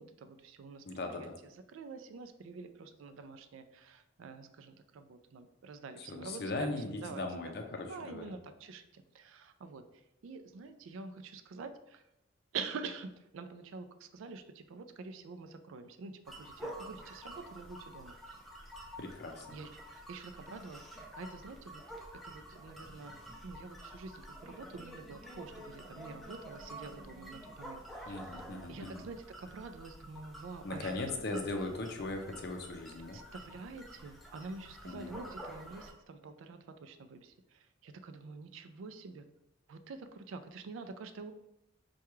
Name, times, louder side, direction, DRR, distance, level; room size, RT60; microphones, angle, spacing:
voice 1, 0.0-6.7 7.0-7.6 7.8-12.0 12.5-18.1 19.5-23.2 23.4-28.3 28.7-30.9 31.3-31.5 33.1-39.3 39.7-41.3, right 4 dB, 90° right, 9 dB, 0.4 m, -47 dB
voice 2, 0.8-1.4 6.1-8.2 19.0-19.5 28.1-29.0 30.6-33.2 34.8-35.1, left 2 dB, 55° left, 4 dB, 0.5 m, -39 dB
sound 1, 16.3-35.9, right 1 dB, ahead, 0.4 m, -49 dB
4.6 x 2.3 x 3.0 m, 0.86 s
head